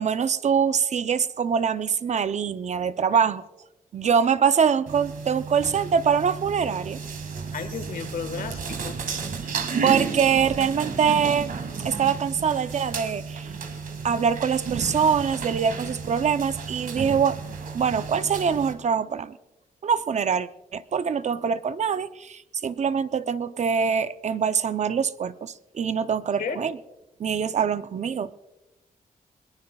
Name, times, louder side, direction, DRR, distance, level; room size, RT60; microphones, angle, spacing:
voice 1, 0.0-3.4 3.9-7.0 9.8-11.5 11.8-13.5 14.0-17.4 17.7-19.4 19.8-26.8 27.2-28.3, right 7 dB, 50° right, 0.5 m, -24 dB
sound 1, 4.9-18.7, right 5 dB, 70° right, 1.9 m, -33 dB
voice 2, 7.5-9.0 26.4-26.6, left 6 dB, 75° left, 1.5 m, -33 dB
21.5 x 19.5 x 2.3 m
wide cardioid pair, 125°, 15 cm